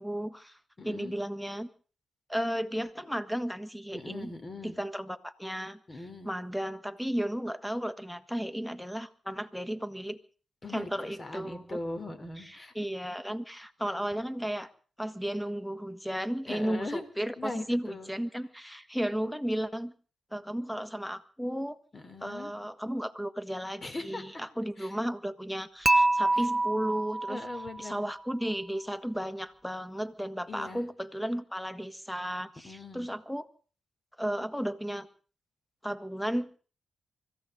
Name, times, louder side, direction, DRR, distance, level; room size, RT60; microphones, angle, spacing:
voice 1, 0.0-0.6 0.8-1.7 2.3-4.3 4.6-5.8 6.2-10.2 10.7-11.8 12.4-14.7 15.0-19.9 20.3-21.8 22.2-27.4 27.8-33.5 34.2-35.1 35.8-36.5, equal, 5° left, 11 dB, 1.6 m, -34 dB
voice 2, 0.8-1.1 3.9-4.8 5.9-6.3 10.6-12.7 16.5-17.0 17.4-18.1 21.9-22.5 23.8-24.2 24.8-25.0 26.3-26.4 27.3-28.0 30.5-30.8 32.6-33.1, left 2 dB, 40° left, 8 dB, 3.4 m, -40 dB
Dishes pots and pans / Chink clink, 25.9-28.0, right 2 dB, 15° right, 0.8 m, -26 dB
25.0 x 15.0 x 3.8 m, 0.39 s
supercardioid pair, 45°, 0 cm